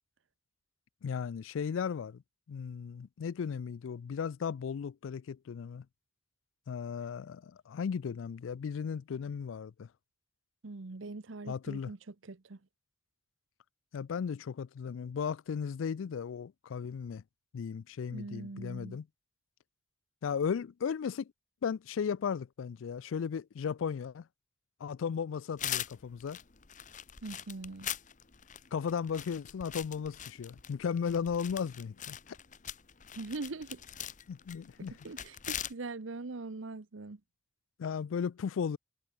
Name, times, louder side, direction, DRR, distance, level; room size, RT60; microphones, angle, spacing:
voice 1, 1.0-2.2 2.5-5.8 6.7-9.9 11.5-11.9 13.9-17.2 17.5-19.0 20.2-21.3 21.6-24.3 24.8-26.4 28.7-32.2 34.3-34.9 37.8-38.8, left 6 dB, 90° left, 0.4 m, -35 dB
voice 2, 10.6-12.6 18.1-19.0 27.2-27.9 33.1-33.8 34.9-37.2, right 3 dB, 85° right, 0.9 m, -42 dB
sound 1, 25.6-35.7, left 10 dB, 40° left, 1.1 m, -42 dB
head